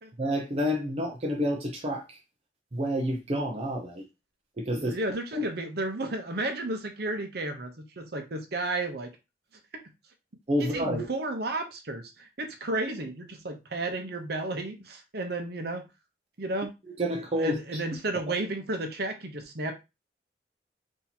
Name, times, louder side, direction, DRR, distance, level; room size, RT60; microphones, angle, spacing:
voice 1, 0.2-2.2 2.7-4.0 4.6-4.9 5.3-5.5 10.5-11.1 17.0-17.8, equal, 35° right, 0.7 m, -29 dB
voice 2, 4.7-9.1 9.7-9.8 10.6-15.9 16.4-16.7 17.4-19.7, right 2 dB, 60° right, 0.9 m, -33 dB
3.6 x 2.8 x 4.3 m
head